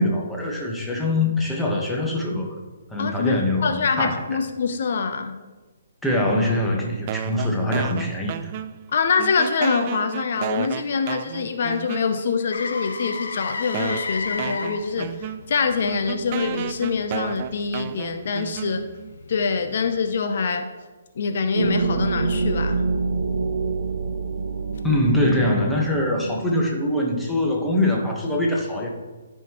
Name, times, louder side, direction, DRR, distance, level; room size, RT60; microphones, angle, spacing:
voice 1, 0.0-2.5 2.9-4.4 6.0-8.5 24.8-28.9, left 1 dB, 5° left, -2 dB, 1.2 m, -23 dB
voice 2, 3.0-3.4 3.6-5.4 8.9-18.9 19.3-20.7 21.2-22.8, left 5 dB, 60° left, 7 dB, 0.7 m, -24 dB
sound 1, 7.1-8.9 9.2-12.4 13.2-13.3 13.7-19.1, right 11 dB, 35° right, 0.3 m, -33 dB
Motor vehicle (road), 12.5-20.4 24.8-24.9, left 4 dB, 80° left, 0.9 m, -35 dB
sound 2, 21.5-27.0, right 4 dB, 75° right, 0.8 m, -26 dB
13.0 x 5.6 x 3.0 m, 1.3 s
hypercardioid pair, 150°, 0 cm